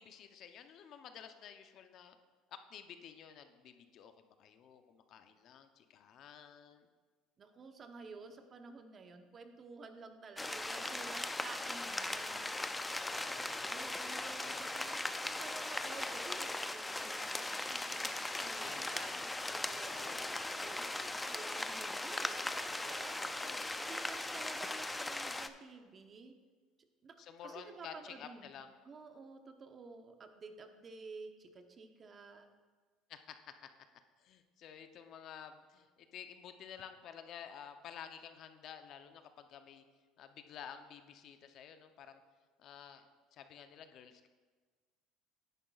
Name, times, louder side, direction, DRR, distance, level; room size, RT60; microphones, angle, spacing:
voice 1, 0.0-2.2 2.5-6.9 13.1-13.6 14.4-14.8 18.6-19.3 19.9-20.7 23.4-23.8 27.2-28.8 33.1-33.4 33.6-33.7 34.2-39.8 40.2-42.2 42.6-43.1 43.3-44.3, left 8 dB, 55° left, 8 dB, 0.6 m, -52 dB
voice 2, 7.4-12.5 13.7-22.4 22.8-23.3 23.8-26.3 27.0-28.5 28.8-32.5, right 4 dB, 35° right, 6 dB, 0.8 m, -52 dB
sound 1, 10.4-25.5, left 2 dB, 10° left, 0.4 m, -39 dB
10.0 x 10.0 x 2.4 m, 1.4 s
supercardioid pair, 105°, 0 cm